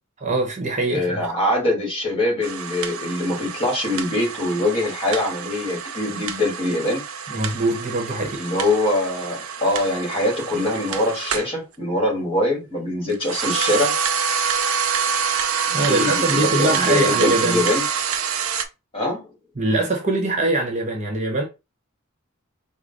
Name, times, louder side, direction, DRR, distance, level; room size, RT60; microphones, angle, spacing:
voice 1, 0.2-1.3 7.3-8.4 15.7-17.6 19.6-21.4, right 2 dB, 35° right, 1.1 m, -23 dB
voice 2, 0.9-7.0 8.4-13.9 15.7-17.8 18.9-19.3, left 1 dB, 25° left, 1.9 m, -23 dB
sound 1, 2.4-11.5 13.1-18.7, right 7 dB, 80° right, 0.6 m, -26 dB
4.9 x 2.2 x 3.9 m
head